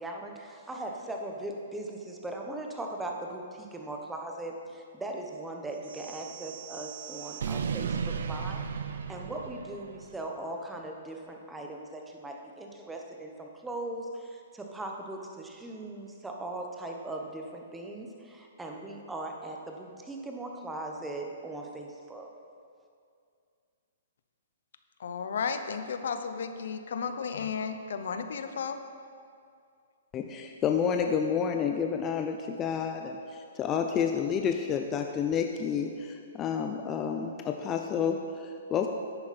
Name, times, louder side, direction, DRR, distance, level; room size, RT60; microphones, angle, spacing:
voice 1, 0.0-22.3, right 2 dB, 10° right, 1 dB, 1.0 m, -39 dB
sound 1, 5.8-10.2, right 6 dB, 75° right, 0.6 m, -36 dB
voice 2, 25.0-28.8, left 6 dB, 70° left, 9 dB, 0.8 m, -33 dB
voice 3, 30.1-38.9, left 7 dB, 25° left, 4 dB, 0.5 m, -30 dB
11.0 x 8.5 x 4.3 m, 2.3 s
hypercardioid pair, 140°, 0 cm